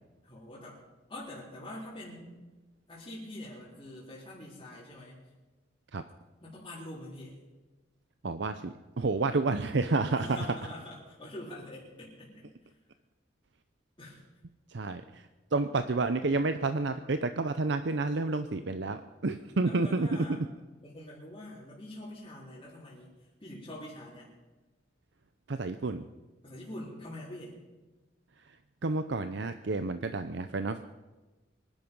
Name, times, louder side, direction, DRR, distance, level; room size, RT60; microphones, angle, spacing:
voice 1, 0.2-0.8 1.1-2.3 2.9-5.3 6.4-7.3 10.1-12.5 14.0-14.2 19.6-20.4 20.8-23.1 23.4-24.3 26.4-27.6, left 1 dB, 25° left, -9 dB, 4.1 m, -44 dB
voice 2, 8.2-10.4 14.7-20.5 25.5-26.1 28.4-28.6 28.8-30.8, right 3 dB, 65° right, 9 dB, 0.7 m, -30 dB
24.0 x 10.5 x 5.5 m, 1.2 s
head